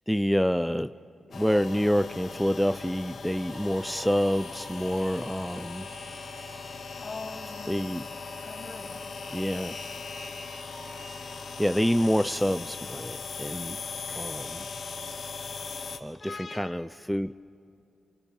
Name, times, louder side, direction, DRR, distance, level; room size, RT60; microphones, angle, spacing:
voice 1, 0.1-0.9 1.3-5.9 7.7-8.0 9.3-9.8 11.2-13.8 14.1-14.6 16.0-17.3, equal, ahead, 11 dB, 0.5 m, -27 dB
sound 1, 1.3-16.0, left 4 dB, 65° left, 1.2 m, -39 dB
sound 2, 3.5-11.3, right 1 dB, 80° right, 7.5 m, -50 dB
voice 2, 7.0-7.8 8.4-9.0 16.2-16.9, left 4 dB, 50° left, 7 dB, 1.4 m, -42 dB
28.0 x 28.0 x 3.6 m, 2.5 s
cardioid pair, 50°, 0 cm